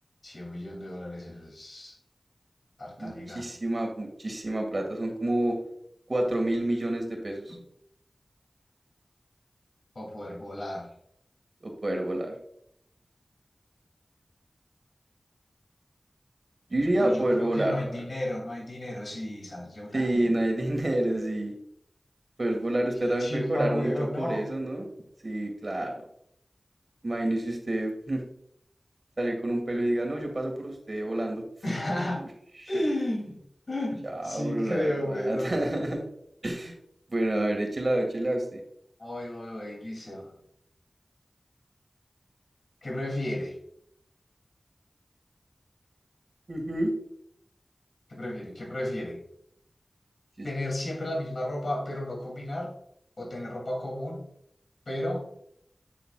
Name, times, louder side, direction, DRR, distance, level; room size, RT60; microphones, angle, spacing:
voice 1, 0.2-2.0 2.8-3.4 7.5-7.6 9.9-10.9 16.9-20.4 23.0-24.5 31.6-32.2 32.7-33.4 33.7-35.6 39.0-40.3 42.8-43.6 48.1-49.2 50.4-52.7 53.2-54.2 54.9-55.3, left 1 dB, 70° left, -1 dB, 2.8 m, -33 dB
voice 2, 3.0-5.6 6.1-7.6 11.6-12.3 16.7-17.9 19.9-21.5 22.4-24.9 25.2-25.9 27.0-28.2 29.2-31.4 34.0-36.0 36.4-36.7 37.1-38.6 46.5-46.9 50.4-50.5, right 1 dB, 55° right, 3 dB, 1.9 m, -28 dB
9.1 x 6.9 x 2.4 m, 0.71 s
wide cardioid pair, 45°, 0 cm